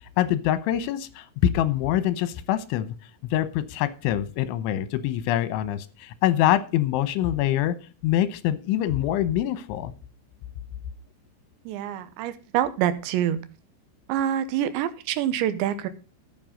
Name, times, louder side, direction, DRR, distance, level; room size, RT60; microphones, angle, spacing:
voice 1, 0.2-1.2 1.5-2.9 3.3-7.7 8.0-9.9, left 12 dB, 85° left, 14 dB, 3.4 m, -25 dB
voice 2, 11.7-13.4 14.1-15.9, right 11 dB, 80° right, 12 dB, 3.1 m, -26 dB
12.0 x 7.2 x 5.1 m, 0.34 s
omnidirectional pair, 5.4 m